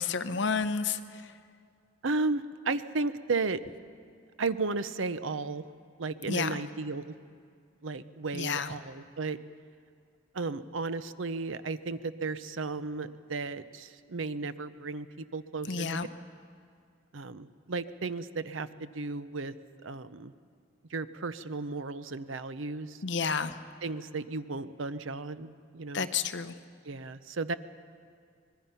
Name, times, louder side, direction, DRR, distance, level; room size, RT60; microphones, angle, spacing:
voice 1, 0.0-1.3 6.3-6.6 8.3-8.7 15.7-16.1 23.0-23.5 25.9-26.5, left 5 dB, 65° left, 10 dB, 0.8 m, -30 dB
voice 2, 2.0-3.6 4.4-5.7 6.0-7.1 7.8-9.4 10.3-16.1 17.1-19.5 19.8-20.3 20.9-23.0 23.8-26.1 26.8-27.5, right 3 dB, 80° right, 13 dB, 0.7 m, -34 dB
25.5 x 20.5 x 5.7 m, 2.2 s
head